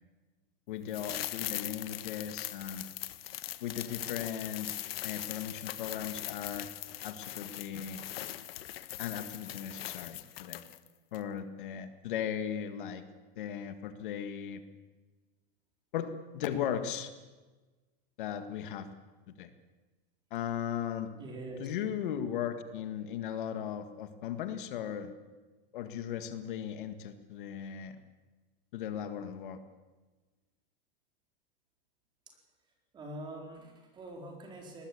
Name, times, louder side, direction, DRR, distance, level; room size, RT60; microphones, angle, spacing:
voice 1, 0.7-2.9 3.6-4.8 5.0-6.7 7.0-8.0 9.0-10.6 11.1-13.0 13.4-14.6 15.9-17.1 18.2-18.9 19.4-19.5 20.3-21.1 21.6-25.1 25.7-28.0 28.7-29.6, left 9 dB, 60° left, 9 dB, 1.9 m, -37 dB
sound 1, 0.9-10.9 11.1-11.2, left 13 dB, 90° left, 1.4 m, -41 dB
voice 2, 21.1-21.7 32.9-34.9, right 1 dB, 15° right, 1 dB, 4.3 m, -44 dB
23.0 x 19.5 x 8.4 m, 1.2 s
supercardioid pair, 175°, 29 cm